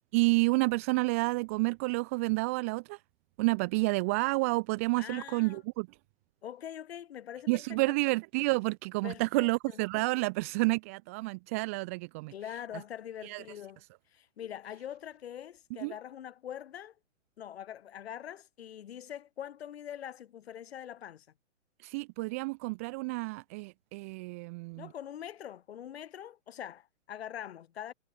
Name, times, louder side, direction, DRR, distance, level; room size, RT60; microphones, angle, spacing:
voice 1, 0.1-3.0 3.4-5.9 7.5-12.3 13.2-13.4 15.8-15.9 21.8-24.9, right 26 dB, 15° right, 0.5 m, -30 dB
voice 2, 5.0-5.6 6.4-7.6 7.9-8.0 9.0-9.8 12.3-13.8 14.1-17.0 17.4-21.3 24.8-27.9, left 10 dB, 60° left, 5.1 m, -43 dB
hypercardioid pair, 155°, 36 cm